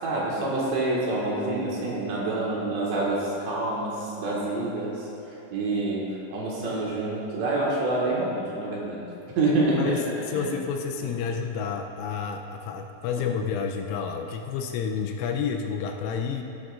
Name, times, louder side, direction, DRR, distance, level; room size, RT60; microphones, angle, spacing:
voice 1, 0.0-4.9 5.5-6.0 6.3-9.0 9.4-10.0 10.3-10.5 13.2-13.3, right 2 dB, 65° right, -6 dB, 3.5 m, -27 dB
voice 2, 9.5-16.4, left 6 dB, 80° left, 3 dB, 3.1 m, -30 dB
16.5 x 10.5 x 2.5 m, 2.9 s
omnidirectional pair, 5.9 m